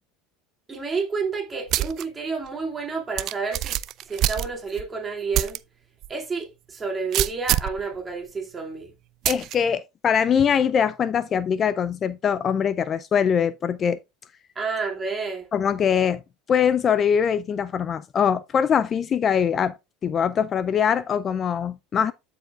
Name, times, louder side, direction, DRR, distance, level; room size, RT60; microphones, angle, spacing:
voice 1, 0.7-3.8 4.1-5.6 6.1-8.9 14.6-15.5, right 4 dB, 25° right, 2.3 m, -30 dB
sound 1, 1.7-2.0 2.5-2.6 3.2-4.9 5.3-5.6 6.0-6.1 7.1-7.8 9.3-9.6, right 13 dB, 50° right, 0.4 m, -25 dB
voice 2, 9.3-14.0 15.5-16.2 16.5-19.7 20.0-22.1, left 7 dB, 35° left, 0.4 m, -22 dB
13.0 x 4.8 x 2.4 m
supercardioid pair, 95°, 0 cm